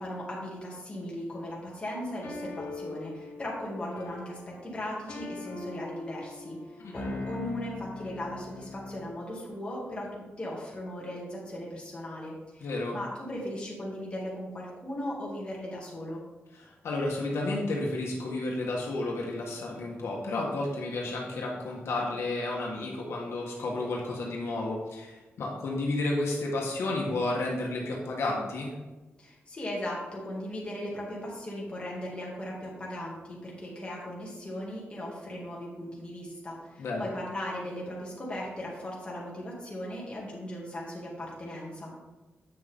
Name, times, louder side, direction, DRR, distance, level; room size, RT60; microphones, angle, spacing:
voice 1, 0.0-16.2 29.2-41.9, left 1 dB, 25° left, -5 dB, 2.4 m, -38 dB
sound 1, 2.2-9.2, left 3 dB, 60° left, 1.7 m, -41 dB
voice 2, 12.6-13.0 16.5-28.7 36.8-37.0, left 2 dB, 80° left, -2 dB, 1.6 m, -31 dB
8.4 x 6.3 x 3.7 m, 1.1 s
wide cardioid pair, 140°, 4 cm